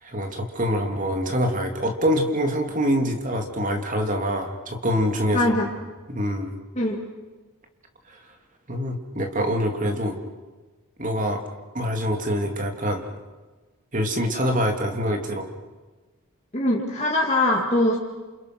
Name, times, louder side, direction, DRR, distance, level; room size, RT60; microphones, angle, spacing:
voice 1, 0.0-5.4 6.1-6.5 8.7-10.2 11.0-11.4 11.7-13.0 13.9-15.5, equal, 35° right, 3 dB, 3.0 m, -25 dB
voice 2, 5.3-5.7 6.8-7.0 16.5-18.0, left 1 dB, 30° left, -2 dB, 2.6 m, -22 dB
28.5 x 28.5 x 6.2 m, 1.3 s
head